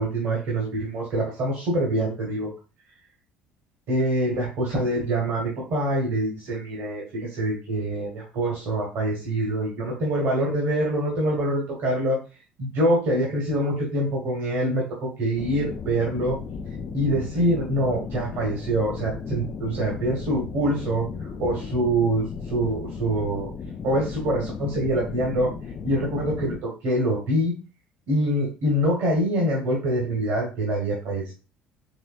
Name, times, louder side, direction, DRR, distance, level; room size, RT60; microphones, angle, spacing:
voice 1, 0.0-2.5 3.9-12.2 12.6-16.4 16.9-22.2 22.5-23.5 23.8-25.5 25.8-27.5 28.1-31.3, right 1 dB, 55° right, -2 dB, 1.3 m, -25 dB
sound 1, 15.4-26.6, left 5 dB, 40° left, 0.4 m, -35 dB
4.4 x 3.1 x 2.4 m, 0.32 s
figure-of-eight pair, 55°, 5 cm